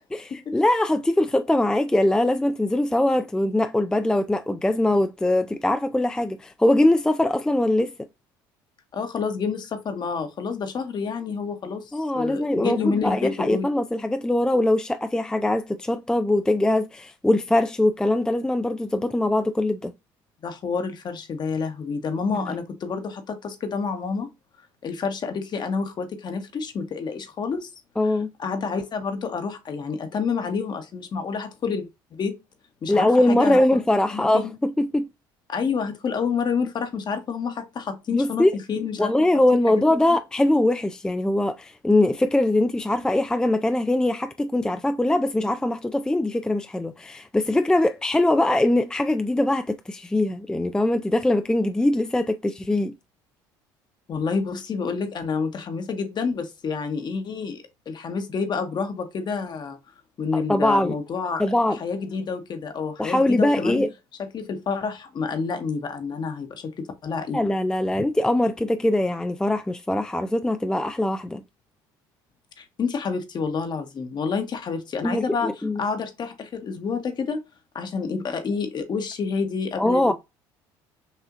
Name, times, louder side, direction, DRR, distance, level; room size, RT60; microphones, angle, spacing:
voice 1, 0.1-7.9 11.9-19.9 22.3-22.5 28.0-28.3 32.9-35.1 38.1-38.5 39.0-52.9 60.3-61.0 61.4-61.8 63.0-63.9 67.3-71.4 75.0-75.8 79.8-80.1, left 1 dB, 5° left, 0.3 m, -22 dB
voice 2, 8.9-13.7 20.4-24.3 24.8-27.7 28.1-32.3 32.8-33.6 34.1-34.5 35.5-39.1 40.1-40.2 54.1-59.8 60.2-61.4 61.8-63.8 64.3-66.7 67.0-67.4 72.6-77.4 77.7-80.1, left 5 dB, 45° left, 1.2 m, -29 dB
5.5 x 2.8 x 2.5 m
supercardioid pair, 80°, 11 cm